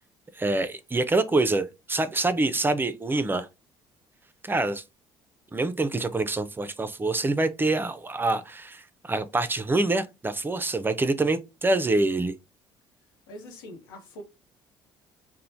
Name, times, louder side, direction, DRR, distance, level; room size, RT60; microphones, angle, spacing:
voice 1, 0.3-3.5 4.4-4.8 5.5-12.3, right 2 dB, 20° right, 0.4 m, -26 dB
voice 2, 13.3-14.2, equal, 90° left, 0.7 m, -43 dB
3.0 x 2.1 x 2.5 m
hypercardioid pair, 60°, 11 cm